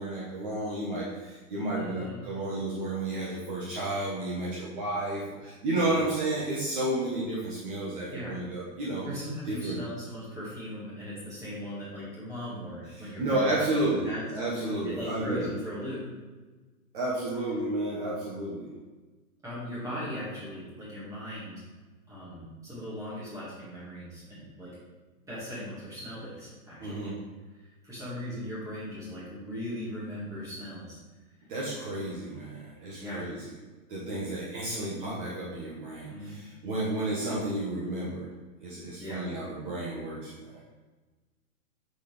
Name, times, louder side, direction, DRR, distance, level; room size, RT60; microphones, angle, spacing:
voice 1, 0.0-9.0 9.5-9.8 12.9-15.5 16.9-18.7 26.8-27.2 31.5-33.4 33.9-38.3 38.6-40.6, right 1 dB, 35° right, -5 dB, 1.4 m, -32 dB
voice 2, 1.7-2.2 5.8-6.0 8.1-8.4 9.0-14.2 14.8-16.0 19.4-21.5 22.1-24.8 25.3-27.1 27.8-31.0 32.1-32.3 33.0-33.2 36.1-36.4 39.0-39.2, equal, 10° right, -9 dB, 2.2 m, -38 dB
6.7 x 5.7 x 3.5 m, 1.3 s
hypercardioid pair, 165°, 42 cm